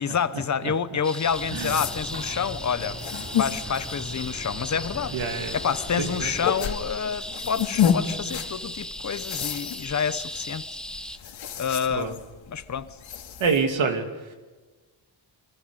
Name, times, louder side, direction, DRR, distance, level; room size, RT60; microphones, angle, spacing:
voice 1, 0.0-3.0 3.3-5.1 5.5-10.7 11.6-12.2 12.5-13.0, left 7 dB, 40° left, 0.8 m, -28 dB
sound 1, 1.0-11.2, left 1 dB, ahead, 0.7 m, -37 dB
sound 2, 1.2-13.6, left 8 dB, 85° left, 2.4 m, -32 dB
sound 3, 1.3-6.4, right 1 dB, 30° right, 7.1 m, -40 dB
voice 2, 1.5-1.8 5.1-5.6 6.0-6.5 11.9-12.1 13.4-14.3, right 5 dB, 90° right, 2.9 m, -27 dB
28.0 x 24.0 x 5.3 m
wide cardioid pair, 175°, 46 cm